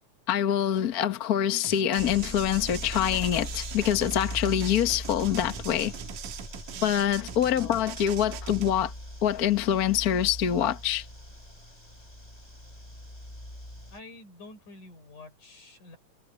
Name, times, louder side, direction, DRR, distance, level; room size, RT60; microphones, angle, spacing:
voice 1, 0.3-5.9 6.8-8.9 9.2-11.1, left 10 dB, 60° left, 1.0 m, -25 dB
sound 1, 1.6-8.7, right 10 dB, 80° right, 2.6 m, -41 dB
sound 2, 2.0-14.0, left 1 dB, 10° left, 6.5 m, -40 dB
voice 2, 6.7-7.0 13.9-16.0, left 2 dB, 75° left, 7.7 m, -48 dB
omnidirectional pair, 3.6 m